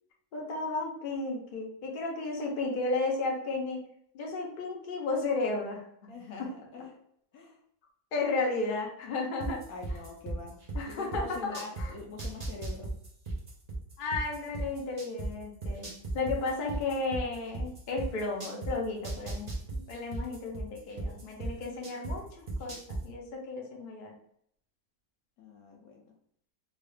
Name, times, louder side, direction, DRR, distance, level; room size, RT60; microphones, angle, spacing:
voice 1, 0.3-3.8 4.1-6.1 8.1-9.6 10.7-11.9 14.0-22.8 23.0-24.1, left 3 dB, 45° left, -1 dB, 0.7 m, -33 dB
voice 2, 6.1-7.0 7.3-7.6 9.7-10.5 10.8-12.9 25.4-26.1, left 4 dB, 70° left, 0 dB, 1.0 m, -44 dB
sound 1, 9.4-11.8 12.2-15.3 15.6-18.7 19.0-22.1 22.5-23.0, right 2 dB, 40° right, 0.5 m, -35 dB
3.6 x 2.4 x 3.3 m, 0.70 s
omnidirectional pair, 1.8 m